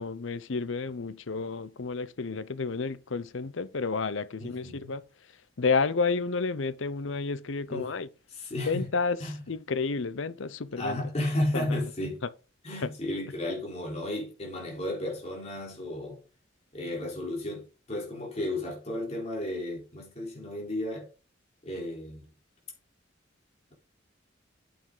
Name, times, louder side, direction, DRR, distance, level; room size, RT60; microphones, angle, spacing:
voice 1, 0.0-5.0 5.6-8.1 8.7-9.2 9.5-11.0 11.5-11.7 12.8-12.9, left 4 dB, 75° left, 0.7 m, -30 dB
voice 2, 4.4-4.9 7.7-7.9 8.3-8.9 9.2-9.4 10.8-12.2 12.6-16.2 16.7-21.1 21.6-22.3, left 1 dB, 35° left, 3.8 m, -33 dB
9.1 x 7.0 x 3.9 m
head